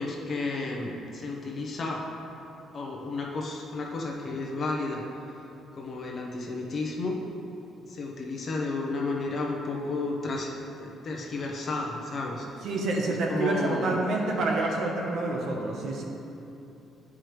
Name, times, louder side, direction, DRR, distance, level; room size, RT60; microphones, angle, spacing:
voice 1, 0.0-2.0 2.7-5.0 5.7-7.2 7.9-12.7 13.3-14.0, left 3 dB, 35° left, -1 dB, 0.8 m, -32 dB
voice 2, 12.6-16.0, right 2 dB, 55° right, 0 dB, 0.9 m, -28 dB
11.0 x 4.8 x 3.1 m, 2.8 s
cardioid pair, 175°, 0 cm